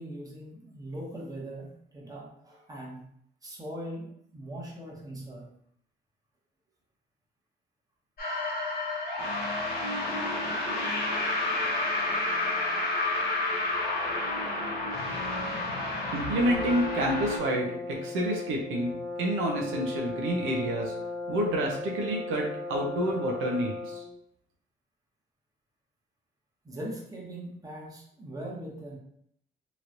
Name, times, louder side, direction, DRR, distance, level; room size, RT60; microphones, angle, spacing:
voice 1, 0.0-3.1 3.4-5.5 26.6-29.0, right 1 dB, 20° right, -3 dB, 1.0 m, -40 dB
sound 1, 8.2-17.4, left 2 dB, 50° left, 1.3 m, -30 dB
voice 2, 16.1-20.9 21.3-24.0, right 1 dB, 90° right, 0 dB, 0.7 m, -29 dB
Brass instrument, 16.4-24.2, left 2 dB, 10° left, 0.6 m, -36 dB
3.0 x 3.0 x 2.5 m, 0.68 s
cardioid pair, 90°, 20 cm